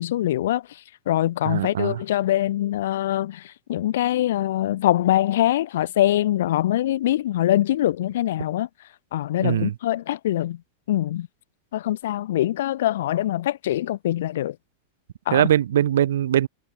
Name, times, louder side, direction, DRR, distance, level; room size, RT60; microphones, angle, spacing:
voice 1, 0.0-8.7 9.1-10.6 10.9-11.3 11.7-14.6 15.3-15.5, left 13 dB, 60° left, 1.8 m, -23 dB
voice 2, 1.4-2.0 9.4-9.7 15.3-16.5, right 11 dB, 60° right, 1.1 m, -21 dB
figure-of-eight pair, 90°, 0 cm